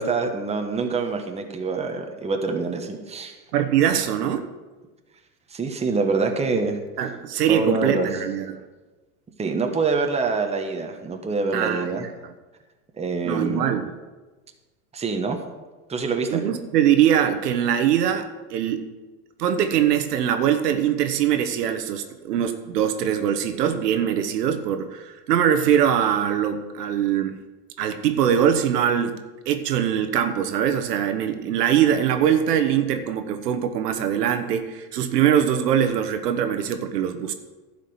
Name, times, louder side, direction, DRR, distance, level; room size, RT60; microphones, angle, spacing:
voice 1, 0.0-3.4 3.9-4.1 5.5-6.8 7.5-8.1 9.4-12.1 13.0-13.7 14.9-15.4 15.9-16.4, right 4 dB, 15° right, 4 dB, 1.2 m, -25 dB
voice 2, 3.5-4.4 7.0-8.6 11.5-12.1 13.2-13.8 16.3-18.9 19.4-27.4 27.8-37.3, right 9 dB, 80° right, 8 dB, 1.2 m, -22 dB
11.5 x 5.1 x 8.0 m, 1.2 s
hypercardioid pair, 110°, 47 cm